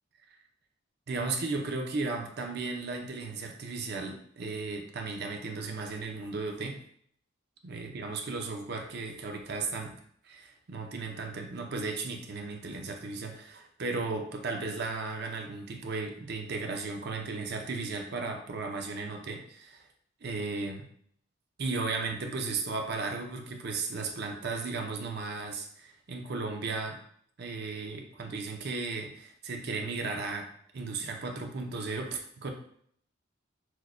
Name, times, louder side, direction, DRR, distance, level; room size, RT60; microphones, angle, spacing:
voice 1, 1.1-6.8 7.6-9.9 10.2-19.9 20.2-20.9 21.6-27.0 27.4-30.5 30.7-32.5, right 3 dB, 55° right, 3 dB, 0.5 m, -35 dB
6.1 x 2.1 x 2.5 m, 0.64 s
head